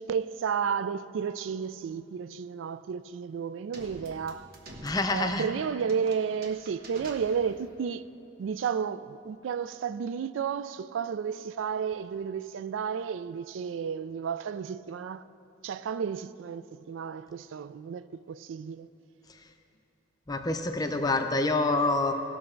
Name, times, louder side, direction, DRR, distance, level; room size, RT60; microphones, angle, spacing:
voice 1, 0.0-4.5 5.1-8.0 8.4-15.2 15.6-18.9, right 6 dB, 85° right, 0.3 m, -32 dB
sound 1, 3.7-7.8, right 1 dB, 55° right, 1.2 m, -48 dB
voice 2, 4.8-5.5 20.3-22.1, left 2 dB, 20° left, 0.6 m, -27 dB
17.5 x 6.4 x 4.5 m
head